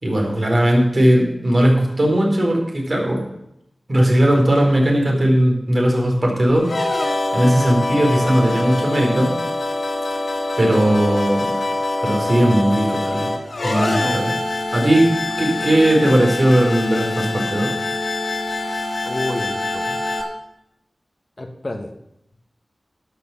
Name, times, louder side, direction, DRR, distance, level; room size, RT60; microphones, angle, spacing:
voice 1, 0.0-3.2 3.9-6.7 7.3-9.3 10.6-11.6 12.0-13.3 13.6-14.3 14.7-15.1 15.4-17.7, right 1 dB, 45° right, 0 dB, 4.1 m, -17 dB
sound 1, 6.6-20.2, left 2 dB, 70° left, 2.3 m, -24 dB
voice 2, 19.0-20.0 21.4-21.9, left 1 dB, 35° left, 4 dB, 1.3 m, -29 dB
11.5 x 7.6 x 7.0 m, 0.81 s
wide cardioid pair, 65°, 0 cm